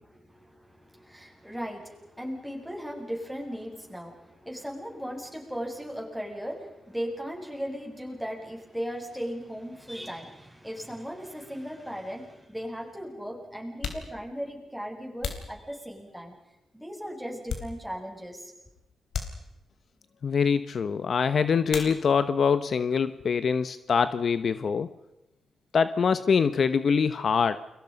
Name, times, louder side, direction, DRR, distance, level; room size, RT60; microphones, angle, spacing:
voice 1, 0.0-16.3 16.7-18.5, equal, ahead, 0 dB, 7.5 m, -37 dB
sound 1, 13.7-16.3 16.8-18.2 18.5-18.6 19.1-19.9 21.6-22.4 22.7-23.4 23.7-25.8, left 7 dB, 80° left, 3.6 m, -40 dB
voice 2, 20.2-24.9 25.7-27.6, left 6 dB, 60° left, 12 dB, 1.0 m, -24 dB
29.5 x 23.5 x 5.4 m, 0.91 s
cardioid pair, 75°, 0 cm